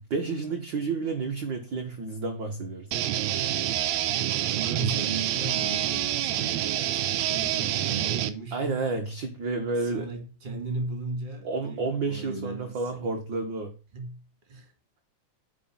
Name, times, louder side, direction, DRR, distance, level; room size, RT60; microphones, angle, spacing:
voice 1, 0.0-2.9 8.5-10.1 11.4-13.7, right 4 dB, 60° right, 1.2 m, -30 dB
sound 1, 2.9-8.3, right 12 dB, 75° right, 1.7 m, -27 dB
voice 2, 4.1-8.9 9.8-13.1 13.9-14.7, right 3 dB, 20° right, 1.6 m, -37 dB
9.5 x 3.9 x 7.2 m
omnidirectional pair, 3.6 m